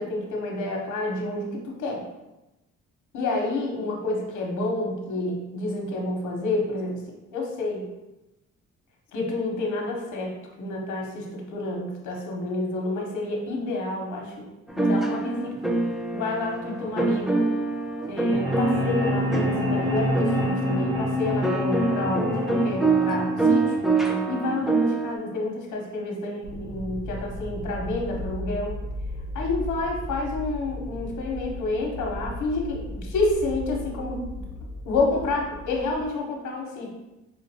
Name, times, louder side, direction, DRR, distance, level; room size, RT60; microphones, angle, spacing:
voice 1, 0.0-2.0 3.1-7.0 7.3-7.8 9.1-14.3 14.7-15.7 16.1-17.4 18.1-23.8 24.3-28.7 29.3-34.4 34.8-36.9, left 2 dB, 75° left, 0 dB, 1.0 m, -29 dB
sound 1, 14.7-25.2, right 3 dB, ahead, 0.4 m, -26 dB
sound 2, 18.3-24.3, equal, 45° right, 1.3 m, -27 dB
sound 3, 26.4-36.1, left 1 dB, 75° right, 1.4 m, -36 dB
4.7 x 2.5 x 2.8 m, 0.98 s
cardioid pair, 90°, 30 cm